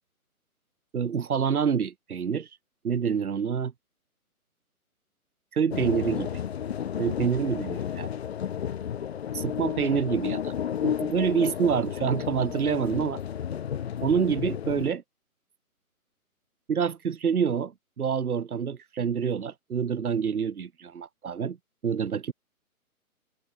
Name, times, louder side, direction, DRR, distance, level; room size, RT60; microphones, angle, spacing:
voice 1, 0.9-2.5 2.8-3.7 5.5-6.4 7.0-8.1 9.3-10.5 10.8-13.2 14.0-15.0 16.7-21.6 21.8-22.3, right 7 dB, 75° right, 1.6 m, -27 dB
sound 1, 5.7-14.9, left 9 dB, 45° left, 0.5 m, -32 dB
hypercardioid pair, 145°, 44 cm